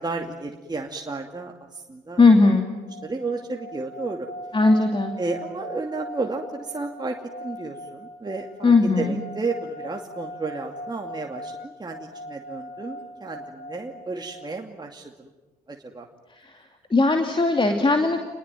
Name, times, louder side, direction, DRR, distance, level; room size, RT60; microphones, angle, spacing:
voice 1, 0.0-2.2 3.0-4.3 5.2-15.3 15.7-16.1, right 3 dB, 20° right, 1 dB, 2.6 m, -32 dB
voice 2, 2.2-2.7 4.5-5.1 8.6-9.2 16.4-16.5 16.9-18.2, left 3 dB, 25° left, 4 dB, 2.8 m, -18 dB
sound 1, 2.7-14.6, equal, 60° left, 2.3 m, -40 dB
28.0 x 21.0 x 9.2 m, 1.2 s
hypercardioid pair, 50°, 19 cm